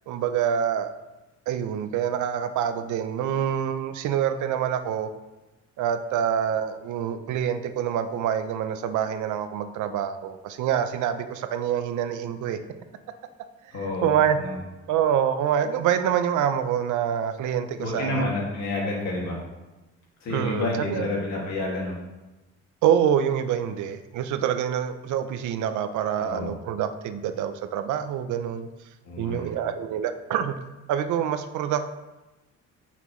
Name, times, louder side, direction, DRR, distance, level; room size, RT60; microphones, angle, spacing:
voice 1, 0.1-0.9 1.5-5.1 5.8-12.6 13.7-14.4 14.9-18.3 20.3-21.1 22.8-28.7 29.2-30.6 30.9-31.9, right 9 dB, 75° right, 9 dB, 0.7 m, -26 dB
voice 2, 13.7-14.1 14.4-14.5 17.8-19.4 20.2-22.0 26.2-26.6 29.0-29.5, left 2 dB, 60° left, -3 dB, 2.3 m, -29 dB
9.3 x 5.9 x 3.1 m, 1.1 s
cardioid pair, 165°, 30 cm